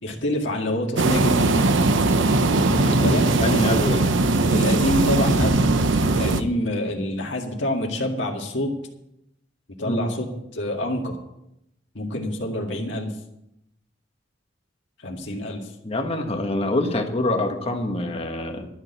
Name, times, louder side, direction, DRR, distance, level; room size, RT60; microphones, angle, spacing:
voice 1, 0.0-1.5 2.8-3.2 4.5-5.6 6.1-8.7 9.8-10.3 10.5-11.2 11.9-13.1 15.0-15.6, left 1 dB, 70° left, 0 dB, 2.1 m, -26 dB
sound 1, 1.0-6.4, right 2 dB, 80° right, 0.8 m, -20 dB
voice 2, 2.7-4.0 9.8-10.0 15.8-18.7, left 1 dB, 35° left, 5 dB, 1.5 m, -25 dB
12.5 x 6.6 x 8.0 m, 0.83 s
head